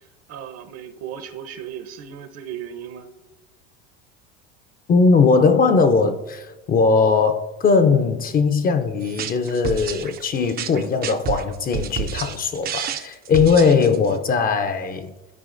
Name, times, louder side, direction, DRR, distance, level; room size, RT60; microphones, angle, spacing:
voice 1, 0.3-3.1, right 9 dB, 55° right, 0.8 m, -36 dB
voice 2, 4.9-15.1, left 4 dB, 30° left, 0.5 m, -19 dB
sound 1, 9.0-14.2, right 8 dB, 30° right, 0.4 m, -30 dB
12.0 x 4.7 x 2.5 m
supercardioid pair, 95°, 31 cm